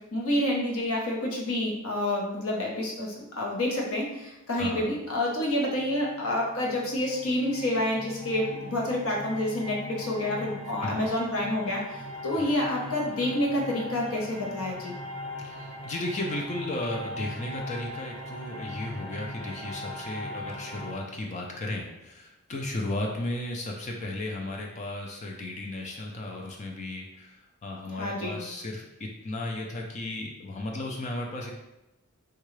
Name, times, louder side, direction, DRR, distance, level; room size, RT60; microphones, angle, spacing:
voice 1, 0.1-11.8 12.2-14.9 28.0-28.4, left 1 dB, 70° left, -2 dB, 0.9 m, -28 dB
voice 2, 4.6-4.9 10.8-11.1 12.4-12.5 15.4-31.5, left 1 dB, 35° left, 0 dB, 0.4 m, -35 dB
sound 1, 5.6-20.9, left 1 dB, 15° left, 1.3 m, -40 dB
3.7 x 2.3 x 3.1 m, 0.95 s
head